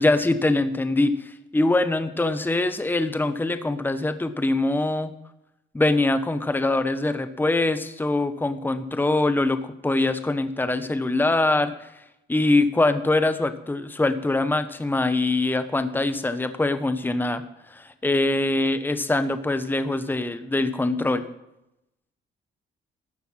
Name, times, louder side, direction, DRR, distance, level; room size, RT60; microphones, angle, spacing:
voice 1, 0.0-5.1 5.7-11.9 12.3-21.2, left 2 dB, 10° left, 11 dB, 1.0 m, -23 dB
14.5 x 12.5 x 5.9 m, 0.88 s
cardioid pair, 90°, 20 cm